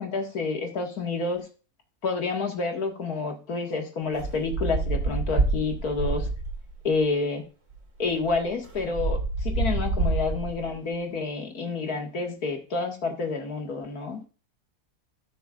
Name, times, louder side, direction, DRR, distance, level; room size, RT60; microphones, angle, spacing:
voice 1, 0.0-1.5 2.0-6.3 6.8-7.4 8.0-14.3, left 4 dB, 85° left, 2 dB, 2.3 m, -29 dB
sound 1, 4.1-6.7 7.7-7.8 8.1-10.7, right 2 dB, 85° right, 2.8 m, -27 dB
16.5 x 6.2 x 2.4 m, 0.36 s
omnidirectional pair, 1.5 m